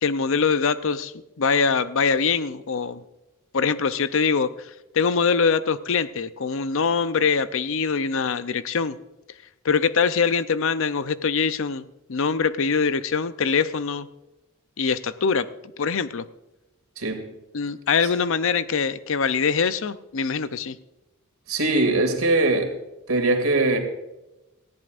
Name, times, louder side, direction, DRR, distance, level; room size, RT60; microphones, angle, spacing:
voice 1, 0.0-3.0 3.5-4.5 4.9-9.0 9.6-14.1 14.8-15.5 15.8-16.3 17.5-20.8, left 5 dB, 65° left, 0.6 m, -23 dB
voice 2, 21.5-22.7 23.1-23.8, right 2 dB, 85° right, 2.5 m, -21 dB
18.5 x 14.5 x 2.6 m
head